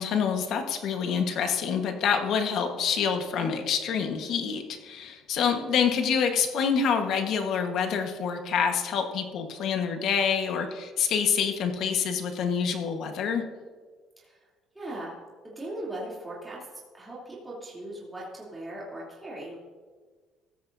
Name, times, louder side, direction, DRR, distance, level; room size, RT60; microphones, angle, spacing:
voice 1, 0.0-13.4, left 6 dB, 65° left, 5 dB, 1.4 m, -27 dB
voice 2, 14.2-14.5 14.7-15.1 15.4-16.7 16.9-19.6, right 1 dB, 10° right, -6 dB, 3.0 m, -39 dB
16.0 x 13.0 x 2.7 m, 1.5 s
cardioid pair, 115°, 0 cm